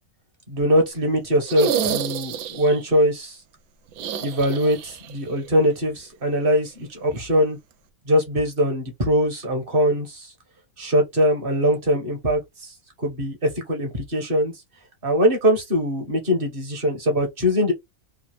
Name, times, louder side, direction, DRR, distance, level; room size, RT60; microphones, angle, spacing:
voice 1, 0.5-3.4 4.2-7.6 8.1-10.3 10.8-12.7 13.0-14.5 15.0-17.7, equal, 40° right, 1.3 m, -22 dB
sound 1, 1.4-2.8 3.9-5.1 5.4-5.5 7.1-7.2, right 7 dB, 80° right, 1.1 m, -28 dB
3.8 x 2.7 x 3.1 m
omnidirectional pair, 1.6 m